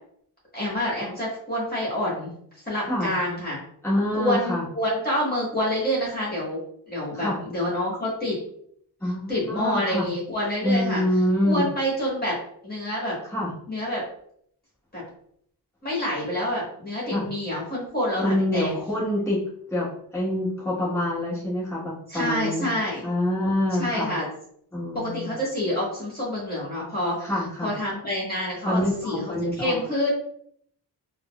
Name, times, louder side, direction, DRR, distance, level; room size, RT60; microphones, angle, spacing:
voice 1, 0.5-2.3 2.6-3.6 4.1-6.6 6.9-8.4 9.3-11.0 11.4-12.4 12.6-13.1 13.7-14.0 14.9-15.0 15.8-18.7 22.1-23.0 23.8-24.3 24.9-27.3 27.6-30.1, left 1 dB, 20° left, -6 dB, 1.5 m, -27 dB
voice 2, 3.8-4.6 7.1-7.4 9.0-10.1 10.6-11.6 13.3-13.5 17.1-17.3 18.2-19.4 19.7-22.7 23.0-24.1 24.7-25.3 27.2-27.7 28.6-29.8, left 1 dB, 5° left, -7 dB, 1.3 m, -26 dB
3.7 x 2.0 x 2.4 m, 0.66 s
cardioid pair, 45°, 41 cm